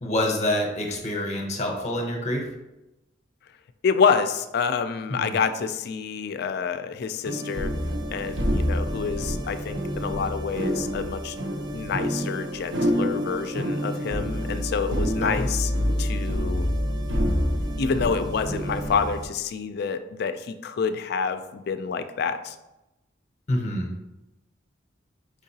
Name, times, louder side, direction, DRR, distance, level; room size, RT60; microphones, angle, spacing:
voice 1, 0.0-2.5 5.1-5.3 15.2-15.5 23.5-23.9, left 1 dB, 35° left, 2 dB, 0.7 m, -27 dB
voice 2, 3.8-7.7 8.1-11.4 11.7-15.7 16.0-16.7 17.8-22.6, left 5 dB, 55° left, 10 dB, 0.3 m, -27 dB
sound 1, 7.2-19.2, equal, 85° right, 0.7 m, -27 dB
5.1 x 3.8 x 2.7 m, 0.97 s
head